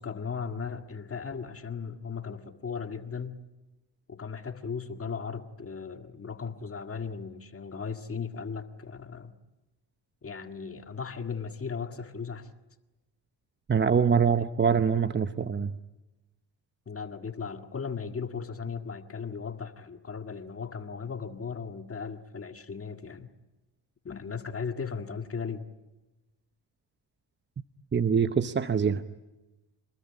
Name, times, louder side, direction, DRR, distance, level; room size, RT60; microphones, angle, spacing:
voice 1, 0.0-3.4 4.1-9.3 10.2-12.5 16.9-23.3 24.0-25.6, left 5 dB, 35° left, 7 dB, 1.9 m, -37 dB
voice 2, 13.7-15.7 27.9-29.0, right 6 dB, 25° right, 11 dB, 0.9 m, -24 dB
27.5 x 20.0 x 9.8 m, 1.0 s
cardioid pair, 80°, 41 cm